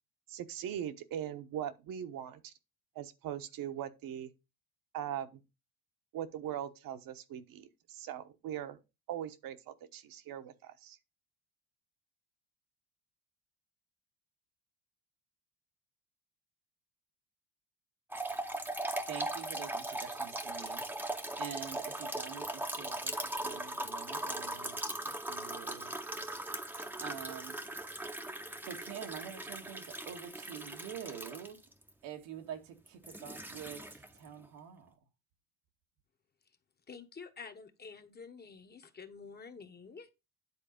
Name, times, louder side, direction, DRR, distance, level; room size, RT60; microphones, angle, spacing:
voice 1, 0.3-2.5 2.9-4.3 4.9-5.4 6.1-8.8 9.1-11.0, right 10 dB, 55° right, 1.1 m, -40 dB
sound 1, 18.1-31.9 32.9-34.3, right 1 dB, 5° right, 0.8 m, -39 dB
voice 2, 19.1-21.1 21.4-26.0 27.0-27.6 28.6-31.6 32.0-35.0, right 9 dB, 85° right, 1.8 m, -46 dB
voice 3, 36.9-40.1, left 5 dB, 25° left, 1.0 m, -49 dB
9.7 x 4.0 x 5.1 m
cardioid pair, 120°, 40 cm